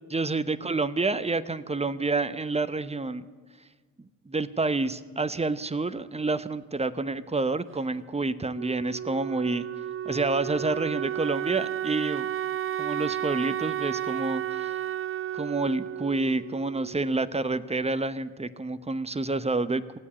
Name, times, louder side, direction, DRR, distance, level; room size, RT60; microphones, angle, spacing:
voice 1, 0.1-3.2 4.0-9.7 10.0-12.3 12.8-14.8 15.3-20.0, right 3 dB, 15° right, 13 dB, 0.9 m, -28 dB
Wind instrument woodwind instrument, 8.5-17.2, right 11 dB, 35° right, 0.4 m, -32 dB
17.0 x 8.4 x 9.6 m, 1.5 s
hypercardioid pair, 50°, 40 cm